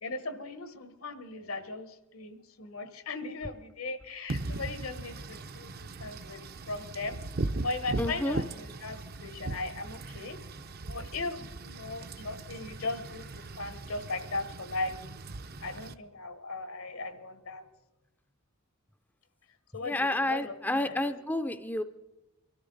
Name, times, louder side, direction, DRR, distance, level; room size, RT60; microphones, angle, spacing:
voice 1, 0.0-5.7 6.0-6.4 6.7-7.2 7.6-10.4 10.9-13.3 13.6-14.9 15.6-17.6 19.7-21.1, left 3 dB, 80° left, 10 dB, 1.3 m, -38 dB
Wind / Rain, 4.3-15.9, right 2 dB, 45° right, 0.6 m, -39 dB
voice 2, 8.0-8.4 19.8-21.8, left 1 dB, 10° left, 9 dB, 0.4 m, -30 dB
23.5 x 13.5 x 3.9 m, 0.96 s
head